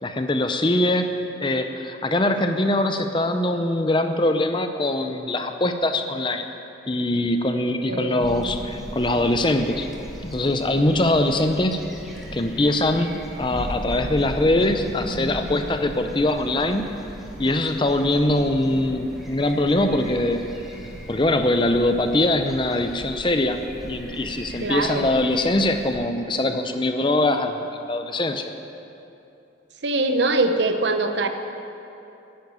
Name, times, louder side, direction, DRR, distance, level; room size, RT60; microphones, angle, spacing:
voice 1, 0.0-6.5 6.9-9.9 10.2-11.8 12.3-16.8 17.4-20.4 21.1-27.5 27.9-28.5, left 1 dB, 25° left, 7 dB, 0.6 m, -22 dB
voice 2, 7.9-8.2 24.6-25.1 29.8-31.3, right 2 dB, 60° right, 7 dB, 0.9 m, -23 dB
sound 1, 8.2-26.0, equal, ahead, 1.4 m, -37 dB
10.5 x 9.7 x 9.4 m, 2.8 s
head